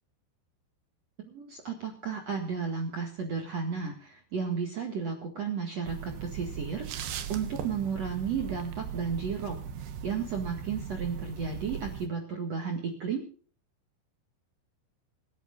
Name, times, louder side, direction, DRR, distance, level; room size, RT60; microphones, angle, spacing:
voice 1, 1.2-9.6 10.0-13.3, right 6 dB, 50° right, 2 dB, 2.4 m, -33 dB
sound 1, 5.8-12.1, right 8 dB, 75° right, 3.4 m, -38 dB
27.0 x 11.5 x 2.5 m, 0.42 s
omnidirectional pair, 5.0 m